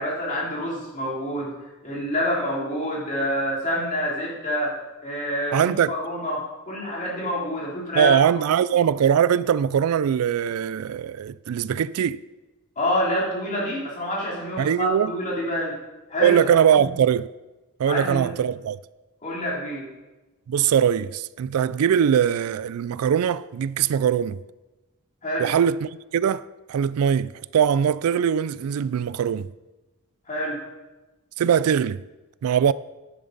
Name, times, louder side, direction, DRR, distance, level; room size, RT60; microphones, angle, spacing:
voice 1, 0.0-1.5 1.8-8.1 12.8-15.7 16.1-16.4 16.8-16.9 17.8-18.3 19.2-19.9 25.2-25.5 30.3-30.6, equal, 35° left, 3.2 m, -27 dB
voice 2, 5.5-5.9 8.0-12.2 14.6-15.1 16.2-17.3 17.8-18.8 20.5-24.4 25.4-26.4 26.7-29.5 31.4-32.0 32.4-32.7, right 8 dB, 80° right, 0.3 m, -21 dB
10.5 x 10.5 x 4.0 m
head